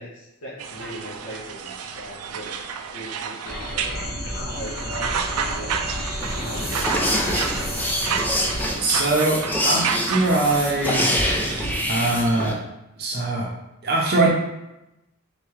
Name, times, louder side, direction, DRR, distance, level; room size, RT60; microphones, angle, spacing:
voice 1, 0.0-2.5 2.9-3.9 4.3-5.8 6.3-7.0, right 1 dB, 80° left, -10 dB, 1.1 m, -39 dB
sound 1, 0.6-11.8, right 6 dB, 90° right, 0.4 m, -31 dB
sound 2, 3.5-8.7, equal, 45° left, 0.9 m, -31 dB
sound 3, 6.2-12.5, left 1 dB, 10° left, 0.4 m, -26 dB
voice 2, 8.8-11.1 11.9-12.6 13.0-13.5 13.8-14.3, right 2 dB, 45° right, -2 dB, 0.6 m, -22 dB
3.7 x 3.5 x 3.1 m, 0.93 s
head